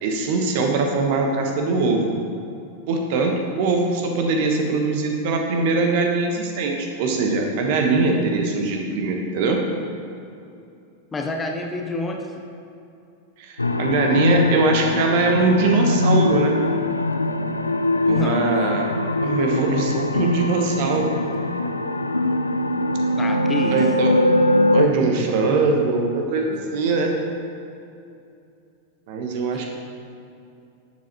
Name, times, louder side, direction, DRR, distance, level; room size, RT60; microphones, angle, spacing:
voice 1, 0.0-2.0 2.9-9.6 13.4-16.5 18.1-18.9 19.2-21.1 23.7-24.1 24.7-27.1 29.1-29.7, right 3 dB, 50° right, 2 dB, 1.2 m, -21 dB
voice 2, 11.1-12.3 18.1-18.6 23.2-23.9, left 2 dB, 15° left, 2 dB, 0.8 m, -28 dB
sound 1, 13.6-24.9, left 1 dB, 80° left, 0.3 m, -22 dB
11.5 x 7.4 x 3.0 m, 2.6 s
figure-of-eight pair, 90°, 0 cm